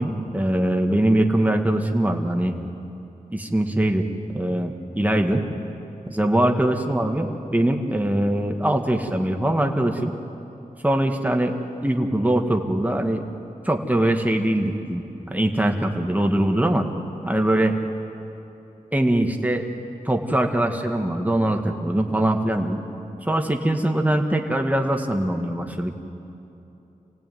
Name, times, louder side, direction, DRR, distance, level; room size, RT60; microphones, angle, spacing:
voice 1, 0.0-2.5 3.3-4.1 4.3-5.4 6.1-10.1 10.8-11.5 11.8-13.2 13.7-16.9 17.2-17.8 18.9-19.6 20.1-22.8 23.3-26.0, right 1 dB, 10° right, 3 dB, 2.0 m, -22 dB
28.0 x 17.0 x 9.4 m, 2.9 s
wide cardioid pair, 105°, 14 cm